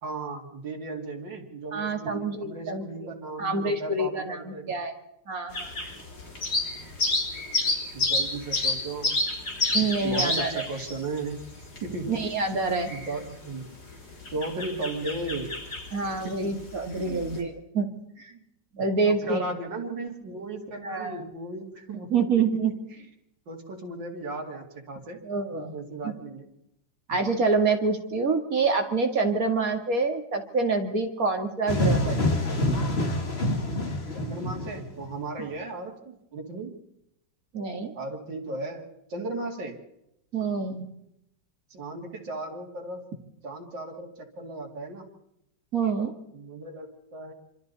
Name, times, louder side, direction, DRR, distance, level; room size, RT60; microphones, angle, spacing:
voice 1, 0.0-4.7 7.9-9.2 10.0-11.4 11.8-12.3 12.9-13.6 14.3-15.6 16.2-16.3 17.0-17.3 18.3-18.4 19.0-22.4 23.5-25.2 25.7-26.5 34.1-36.8 37.9-39.8 41.7-43.0 43.4-45.1 46.3-47.3, right 2 dB, 90° right, 0 dB, 3.2 m, -36 dB
voice 2, 1.7-3.1 3.4-4.9 5.3-5.7 9.7-10.6 12.1-12.9 15.9-17.9 18.2-18.3 18.7-19.5 20.8-21.2 22.1-22.7 25.3-25.7 26.0-26.1 27.1-32.2 37.5-37.9 40.3-40.9 45.7-46.1, right 4 dB, 50° right, 5 dB, 2.5 m, -27 dB
sound 1, 5.5-17.4, left 2 dB, 60° left, 4.5 m, -30 dB
sound 2, 31.7-35.2, left 1 dB, 35° left, 2.1 m, -26 dB
26.5 x 26.0 x 4.1 m, 0.80 s
omnidirectional pair, 1.9 m